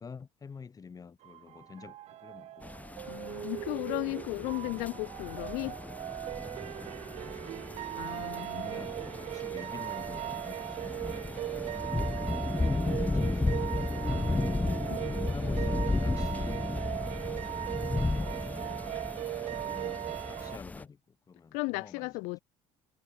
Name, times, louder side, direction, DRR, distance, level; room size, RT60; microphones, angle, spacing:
voice 1, 0.0-2.7 4.6-4.7 7.2-11.1 12.5-13.7 14.6-17.5 17.8-18.8 19.3-22.1, left 5 dB, 30° left, 3.5 m, -49 dB
sound 1, 1.2-20.6, right 13 dB, 60° right, 1.0 m, -38 dB
sound 2, 2.6-20.8, left 2 dB, 10° left, 1.0 m, -34 dB
voice 2, 3.0-5.8 8.0-8.8 14.1-15.2 21.5-22.4, left 28 dB, 80° left, 0.4 m, -36 dB
cardioid pair, 105°, 12 cm